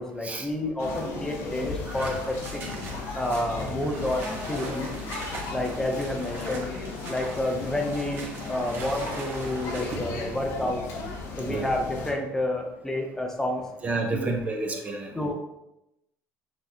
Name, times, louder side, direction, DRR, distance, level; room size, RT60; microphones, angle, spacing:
voice 1, 0.0-2.6 3.1-4.9 5.5-6.7 7.1-10.8 11.4-13.6 14.1-14.3 15.2-15.3, left 1 dB, 10° left, 3 dB, 0.7 m, -29 dB
sound 1, 0.8-12.1, left 3 dB, 75° left, 1.0 m, -36 dB
voice 2, 1.8-2.2 2.6-2.8 11.4-11.7 13.8-15.1, right 3 dB, 25° right, 3 dB, 0.6 m, -30 dB
sound 2, 2.0-10.0, right 2 dB, 45° right, 1.1 m, -41 dB
5.7 x 3.1 x 2.7 m, 0.88 s
cardioid pair, 110°, 5 cm